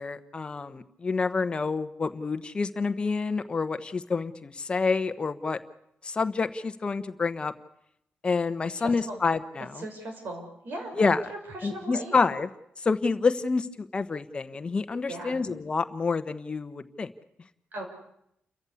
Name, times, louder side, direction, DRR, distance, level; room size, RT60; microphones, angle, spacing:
voice 1, 0.0-5.6 6.0-7.5 8.2-9.8 11.0-11.2 11.6-12.5 12.8-13.7 13.9-17.1, left 4 dB, 25° left, 9 dB, 1.0 m, -28 dB
voice 2, 8.8-9.2 9.6-10.9 11.3-12.1 15.1-15.4 17.7-17.8, right 2 dB, 60° right, 3 dB, 6.1 m, -38 dB
29.0 x 14.5 x 8.4 m, 0.77 s
wide cardioid pair, 175°, 4 cm